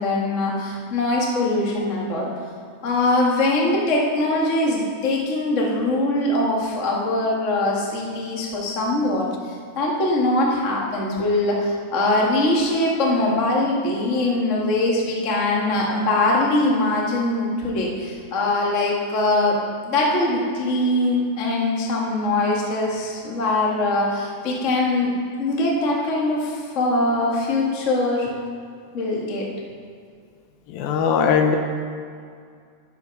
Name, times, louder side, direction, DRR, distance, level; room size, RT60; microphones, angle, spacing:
voice 1, 0.0-2.3 2.8-9.3 9.7-19.6 19.8-25.1 25.4-28.3 28.9-29.5, left 2 dB, 40° left, -3 dB, 1.0 m, -22 dB
voice 2, 30.7-31.6, left 6 dB, 75° left, 4 dB, 2.4 m, -19 dB
11.5 x 11.0 x 5.4 m, 2.2 s
omnidirectional pair, 4.6 m